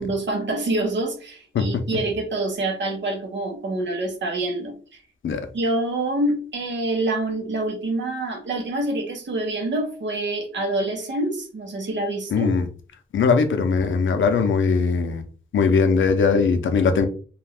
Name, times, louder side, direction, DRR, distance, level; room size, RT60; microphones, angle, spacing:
voice 1, 0.0-4.8 5.5-12.5, right 2 dB, 70° right, 0.9 m, -26 dB
voice 2, 12.3-12.7 13.1-15.2 15.5-17.1, left 5 dB, 80° left, 0.5 m, -20 dB
2.5 x 2.3 x 3.3 m
wide cardioid pair, 180°, 20 cm